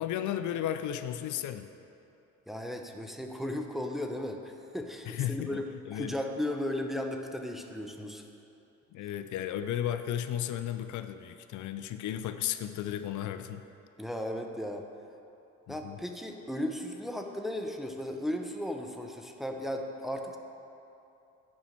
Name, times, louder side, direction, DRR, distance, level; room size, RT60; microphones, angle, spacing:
voice 1, 0.0-1.7 5.1-6.1 8.9-13.6 15.7-16.0, left 11 dB, 75° left, 10 dB, 0.5 m, -34 dB
voice 2, 2.5-5.6 5.9-8.2 14.0-14.9 15.7-20.4, left 1 dB, ahead, 3 dB, 0.7 m, -35 dB
8.8 x 5.4 x 5.8 m, 2.8 s
cardioid pair, 90°, 30 cm